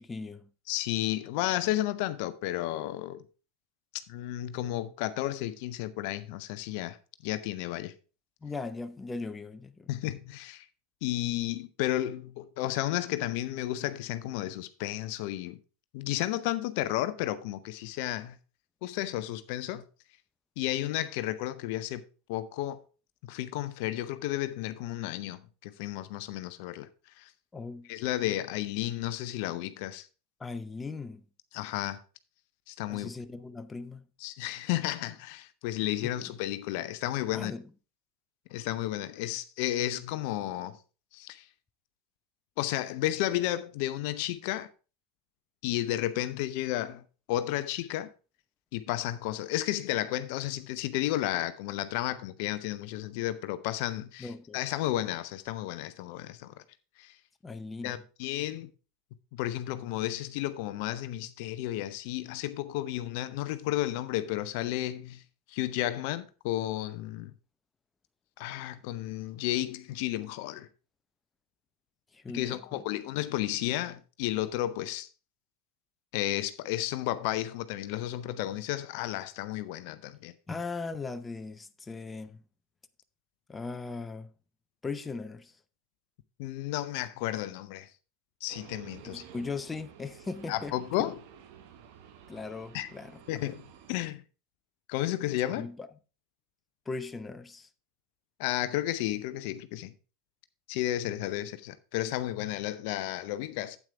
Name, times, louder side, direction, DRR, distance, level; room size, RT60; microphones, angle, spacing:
voice 1, 0.0-0.5 8.4-9.9 27.5-27.9 30.4-31.2 32.9-34.1 36.0-36.3 37.3-37.6 54.2-54.6 57.4-58.0 72.1-72.8 80.5-82.4 83.5-84.3 84.8-85.6 89.0-90.7 92.3-93.6 95.5-95.9 96.9-97.7, left 4 dB, 15° left, 0.6 m, -39 dB
voice 2, 0.7-3.2 4.1-7.0 7.2-7.9 9.9-10.7 11.0-15.6 15.9-18.4 18.8-19.8 20.6-22.0 22.3-22.8 23.2-26.9 27.2-27.3 27.9-30.1 31.5-32.0 32.7-33.1 34.2-37.5 38.5-40.8 41.1-41.5 42.6-44.7 45.6-48.1 48.7-56.5 57.0-57.2 57.8-58.7 59.3-65.2 65.5-67.3 68.4-70.7 72.3-75.1 76.1-80.3 86.4-87.9 88.4-89.2 90.5-91.1 92.7-92.9 93.3-93.6 93.9-94.2 94.9-95.7 98.4-99.9 100.7-103.8, left 14 dB, 55° left, 0.5 m, -32 dB
sound 1, 88.5-94.1, right 9 dB, 55° right, 1.1 m, -52 dB
8.8 x 8.2 x 3.3 m
figure-of-eight pair, 85°, 0 cm